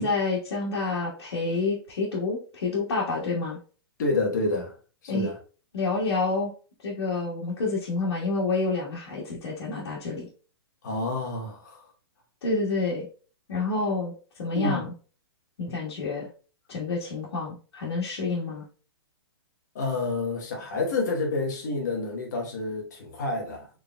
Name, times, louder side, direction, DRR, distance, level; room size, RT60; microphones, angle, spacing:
voice 1, 0.0-3.6 5.1-5.3 5.7-6.5 6.8-10.3 12.4-13.0 13.5-14.1 14.4-14.9 15.6-16.3 16.7-18.6, left 3 dB, 85° left, 1.5 m, -28 dB
voice 2, 4.0-4.8 5.0-5.4 10.8-11.9 14.5-14.8 19.7-23.7, left 3 dB, 45° left, 1.2 m, -29 dB
4.8 x 3.5 x 2.2 m
hypercardioid pair, 175°, 13 cm